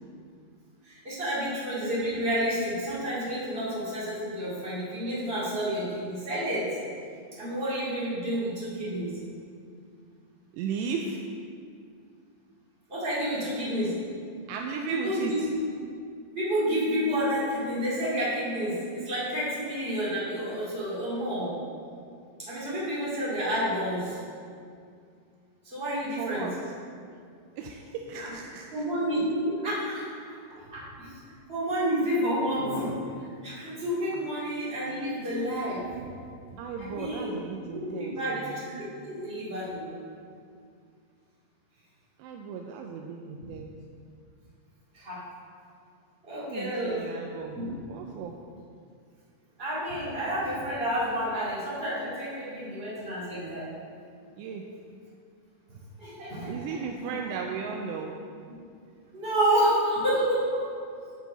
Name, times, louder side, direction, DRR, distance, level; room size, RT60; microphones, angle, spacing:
voice 1, 0.8-6.7 7.4-9.2 12.9-14.0 14.9-15.4 16.3-21.5 22.4-24.2 25.6-26.5 28.1-28.3 28.7-31.2 31.5-36.0 36.8-37.4 37.7-39.9 44.9-45.2 46.2-47.0 47.5-47.7 49.6-53.7 55.7-56.6 57.0-57.1 59.1-60.7, equal, 55° right, -9 dB, 0.6 m, -30 dB
voice 2, 10.5-11.2 14.5-15.6 26.1-26.5 27.6-28.9 36.6-38.6 42.2-43.8 46.4-47.6 47.9-48.4 54.4-54.7 56.5-58.2, right 5 dB, 85° right, 1 dB, 2.5 m, -36 dB
14.5 x 4.8 x 4.0 m, 2.3 s
omnidirectional pair, 5.4 m